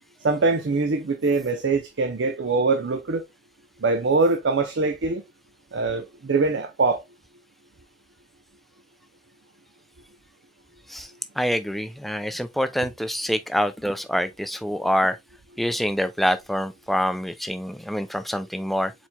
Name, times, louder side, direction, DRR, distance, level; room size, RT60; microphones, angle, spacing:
voice 1, 0.2-3.2 3.8-5.2 5.7-7.0, right 3 dB, 85° right, 0.6 m, -23 dB
voice 2, 11.4-15.2 15.6-18.9, equal, ahead, 0.3 m, -26 dB
4.5 x 4.1 x 2.2 m
head